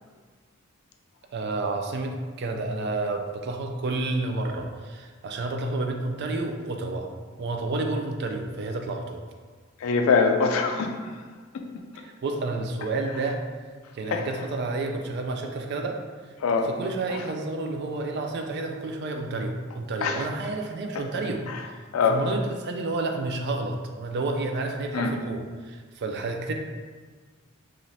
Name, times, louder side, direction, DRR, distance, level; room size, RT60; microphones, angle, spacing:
voice 1, 1.3-7.1 7.4-9.2 12.0-13.4 13.9-16.0 16.6-21.5 22.1-26.5, right 2 dB, 55° right, 3 dB, 0.3 m, -30 dB
voice 2, 9.8-11.0 11.5-11.7 14.1-14.3 16.4-16.7 17.1-17.2 20.0-20.2 21.5-21.6 21.9-22.2 24.9-25.1, left 5 dB, 80° left, 4 dB, 0.3 m, -23 dB
3.1 x 2.5 x 2.6 m, 1.5 s
head